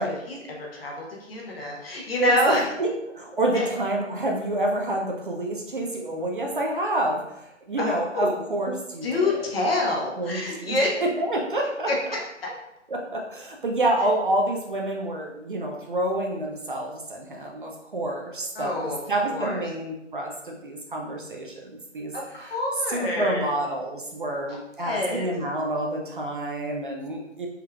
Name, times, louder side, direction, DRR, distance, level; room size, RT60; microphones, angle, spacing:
voice 1, 0.0-2.6 3.5-3.7 7.8-8.4 9.0-10.9 11.9-12.2 18.5-19.0 19.3-19.6 22.1-23.5 24.5-25.3, left 2 dB, 50° left, -2 dB, 1.0 m, -27 dB
voice 2, 2.2-9.5 10.2-11.9 12.9-22.5 22.9-27.5, right 1 dB, 45° right, 1 dB, 0.5 m, -28 dB
3.5 x 3.1 x 2.3 m, 0.86 s
figure-of-eight pair, 145°, 37 cm